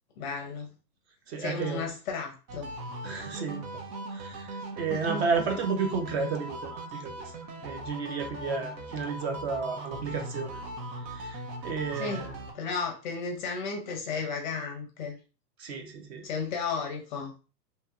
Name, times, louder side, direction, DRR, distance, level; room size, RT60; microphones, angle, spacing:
voice 1, 0.2-0.7 1.4-2.7 4.9-5.2 12.0-12.3 12.5-15.2 16.2-17.3, left 5 dB, 30° left, 2 dB, 0.5 m, -34 dB
voice 2, 1.3-1.9 3.0-3.8 4.1-7.3 7.6-10.6 11.1-12.4 15.6-16.2, right 5 dB, 45° right, 5 dB, 0.5 m, -32 dB
sound 1, 2.5-12.5, right 1 dB, 75° right, 0.9 m, -39 dB
2.8 x 2.7 x 2.3 m, 0.35 s
hypercardioid pair, 125°, 50 cm